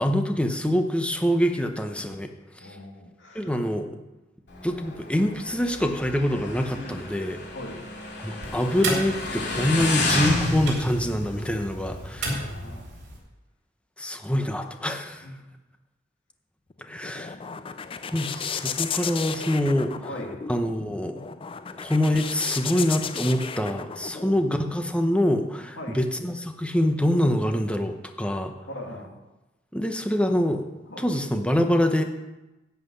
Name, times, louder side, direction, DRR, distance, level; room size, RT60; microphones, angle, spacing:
voice 1, 0.0-2.3 2.6-2.8 3.3-4.0 4.6-7.4 8.2-12.3 14.0-15.3 16.8-17.3 18.1-20.1 20.5-21.2 21.8-28.5 29.7-30.7 31.0-32.0, equal, 5° left, 5 dB, 0.9 m, -25 dB
voice 2, 2.6-3.5 7.5-7.8 12.3-12.8 15.2-15.4 20.1-20.4 24.1-24.4 25.8-26.0 28.7-29.2 30.9-31.1, left 1 dB, 80° left, 0 dB, 2.4 m, -40 dB
Motorcycle, 4.5-12.8, left 2 dB, 65° left, 2.4 m, -31 dB
sound 1, 8.4-13.2, right 2 dB, 65° right, 3.2 m, -34 dB
sound 2, 16.7-24.6, left 7 dB, 30° left, 0.4 m, -34 dB
11.0 x 5.9 x 8.5 m, 1.0 s
head